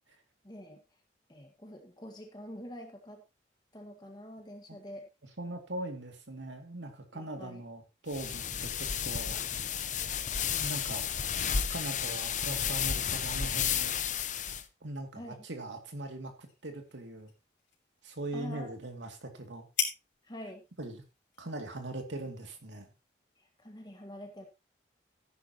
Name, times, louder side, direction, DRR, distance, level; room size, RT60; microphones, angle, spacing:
voice 1, 0.4-0.8 1.3-3.2 3.7-5.1 7.1-7.6 15.2-15.4 18.3-18.7 20.2-20.6 23.4-24.5, equal, 25° left, 3 dB, 1.7 m, -46 dB
voice 2, 5.4-9.7 10.6-11.2 11.7-14.0 14.8-17.3 18.0-19.7 20.8-21.0 21.4-22.9, right 2 dB, 80° right, 5 dB, 2.6 m, -40 dB
sound 1, 8.1-14.6, left 8 dB, 45° left, 0.9 m, -32 dB
sound 2, 15.4-23.2, left 8 dB, 90° left, 4.0 m, -43 dB
14.0 x 10.5 x 3.0 m, 0.26 s
head